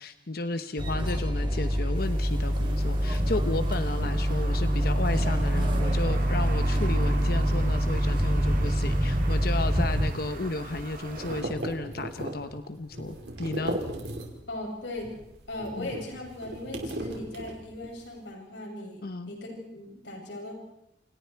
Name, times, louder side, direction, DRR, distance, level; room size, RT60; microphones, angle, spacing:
voice 1, 0.0-13.8 15.8-15.9 19.0-19.3, left 2 dB, 55° left, 9 dB, 1.0 m, -33 dB
sound 1, 0.8-10.1, equal, 25° right, 3.5 m, -25 dB
sound 2, 1.9-11.4, right 3 dB, 45° right, 2.8 m, -41 dB
sound 3, 10.7-14.6 14.9-18.0, right 1 dB, 70° right, 5.2 m, -37 dB
voice 2, 14.5-15.2 15.5-19.0 19.3-20.5, left 1 dB, 75° left, 0 dB, 7.7 m, -38 dB
29.0 x 28.0 x 4.7 m, 0.88 s
head